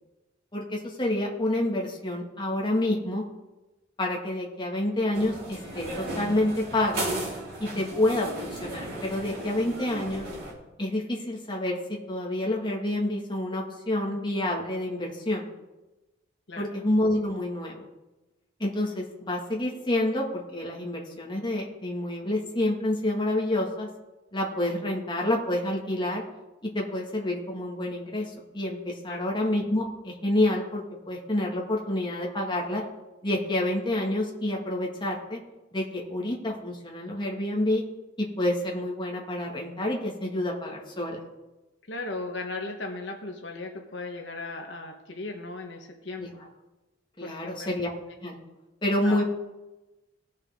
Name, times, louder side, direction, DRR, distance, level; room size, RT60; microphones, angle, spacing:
voice 1, 0.5-3.3 4.0-7.0 7.6-10.3 10.8-15.5 16.6-17.8 18.6-23.9 24.3-26.2 26.6-32.8 33.2-35.4 35.7-37.8 38.2-41.2 46.2-46.3 47.2-47.9 48.2-48.4 48.8-49.2, left 1 dB, 25° left, -2 dB, 2.0 m, -28 dB
sound 1, 5.1-10.5, right 1 dB, 50° right, 3.9 m, -35 dB
voice 2, 41.9-46.3 47.2-47.7 49.0-49.2, left 3 dB, 65° left, 2 dB, 1.2 m, -37 dB
19.5 x 6.5 x 3.7 m, 1.1 s
head